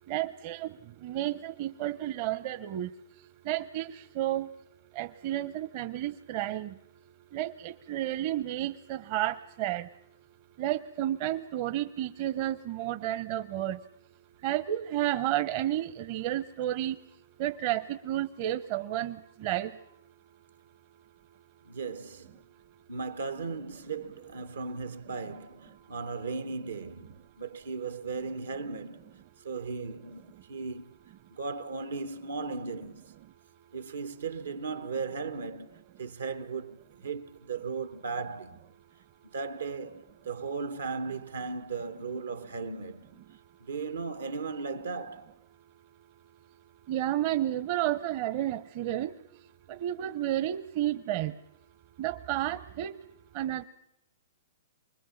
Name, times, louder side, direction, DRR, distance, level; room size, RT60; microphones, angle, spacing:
voice 1, 0.1-2.9 3.4-4.5 4.9-6.8 7.3-9.9 10.6-13.8 14.4-17.0 17.4-19.8 46.9-49.2 49.7-51.3 52.0-52.9 53.3-53.6, right 13 dB, 45° right, 0.8 m, -31 dB
voice 2, 21.6-22.4 22.9-30.9 31.3-33.1 33.7-38.6 39.3-43.2 43.6-45.3, right 4 dB, 90° right, 1.3 m, -37 dB
24.5 x 21.0 x 7.2 m
hypercardioid pair, 125°, 0 cm